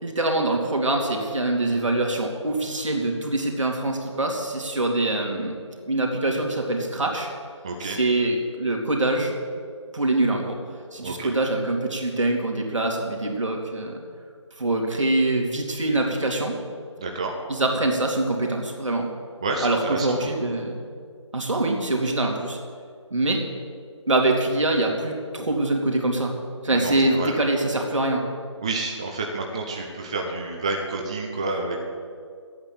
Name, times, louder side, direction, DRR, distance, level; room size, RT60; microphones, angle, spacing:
voice 1, 0.0-5.5 5.9-7.3 7.8-9.3 9.9-10.6 10.9-14.0 14.6-16.5 17.5-19.1 19.6-20.9 21.3-22.6 23.1-23.4 24.1-26.3 26.6-28.2, right 2 dB, 80° right, 1 dB, 2.7 m, -24 dB
voice 2, 7.6-8.0 11.0-11.3 17.0-17.4 19.4-20.3 26.7-27.4 28.6-31.8, right 3 dB, 10° right, 1 dB, 0.5 m, -29 dB
10.5 x 8.7 x 7.7 m, 2.1 s
figure-of-eight pair, 165°, 16 cm